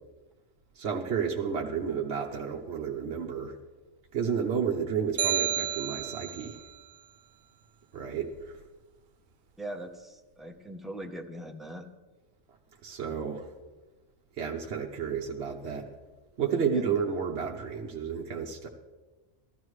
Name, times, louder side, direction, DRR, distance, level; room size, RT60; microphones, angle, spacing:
voice 1, 0.8-3.6 4.1-6.6 7.9-8.6 12.8-13.5 14.4-15.9 16.4-18.7, right 6 dB, 55° right, 0 dB, 1.0 m, -31 dB
sound 1, 5.2-6.6, right 10 dB, 85° right, 1.1 m, -30 dB
voice 2, 9.6-11.9 16.7-17.0, right 1 dB, ahead, 2 dB, 0.6 m, -41 dB
14.0 x 13.0 x 3.2 m, 1.2 s
omnidirectional pair, 1.4 m